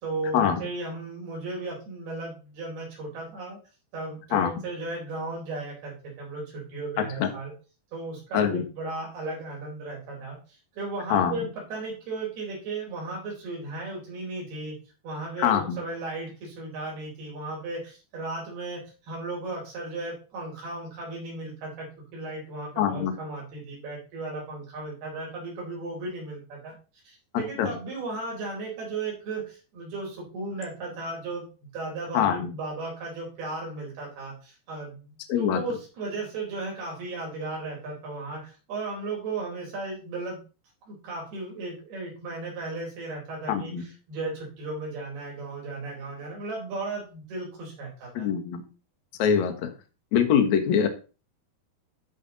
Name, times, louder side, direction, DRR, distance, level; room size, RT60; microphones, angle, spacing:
voice 1, 0.0-3.6 3.9-7.5 7.9-14.7 15.0-21.9 22.1-26.8 27.1-31.5 31.7-35.1 35.4-40.4 40.9-48.3, right 3 dB, 70° right, -2 dB, 6.0 m, -35 dB
voice 2, 15.4-15.8 22.8-23.1 27.6-27.7 32.1-32.5 35.3-35.6 43.5-43.8 48.2-48.6 49.2-49.7 50.1-50.9, left 8 dB, 60° left, 7 dB, 2.1 m, -23 dB
12.5 x 5.1 x 4.0 m, 0.34 s
omnidirectional pair, 4.6 m